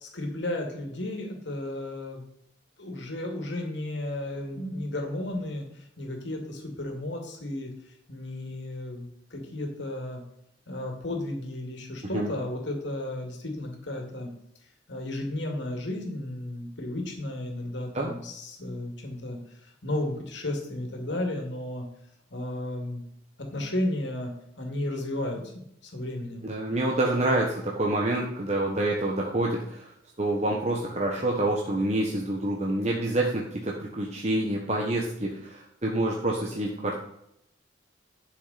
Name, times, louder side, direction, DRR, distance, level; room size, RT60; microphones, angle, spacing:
voice 1, 0.0-2.2 2.8-7.7 8.1-10.2 10.7-14.3 14.9-21.8 22.3-23.0 23.4-24.3 24.6-26.5, left 1 dB, 70° left, 2 dB, 2.4 m, -33 dB
voice 2, 26.4-29.9 30.2-37.0, right 1 dB, 35° right, -1 dB, 1.3 m, -27 dB
11.5 x 6.6 x 4.3 m, 0.75 s
head